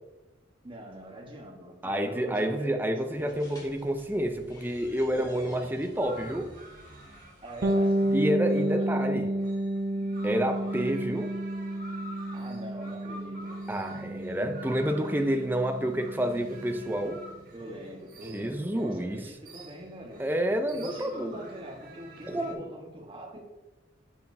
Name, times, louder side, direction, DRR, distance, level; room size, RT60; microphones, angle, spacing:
voice 1, 0.6-3.5 5.1-5.8 7.4-8.2 8.5-8.9 12.3-13.6 17.5-20.2 20.7-23.4, right 1 dB, 25° right, 0 dB, 1.2 m, -43 dB
voice 2, 1.8-6.5 8.1-9.3 10.2-11.3 13.7-17.2 18.3-19.2 20.2-21.4 22.3-22.7, right 1 dB, 10° right, 5 dB, 0.5 m, -29 dB
sound 1, 3.1-8.2, left 1 dB, 20° left, 1.8 m, -52 dB
sound 2, 6.0-22.5, right 1 dB, 50° right, 1.6 m, -49 dB
Bass guitar, 7.6-17.2, right 1 dB, 65° right, 0.7 m, -31 dB
7.3 x 7.0 x 2.7 m, 1.1 s
head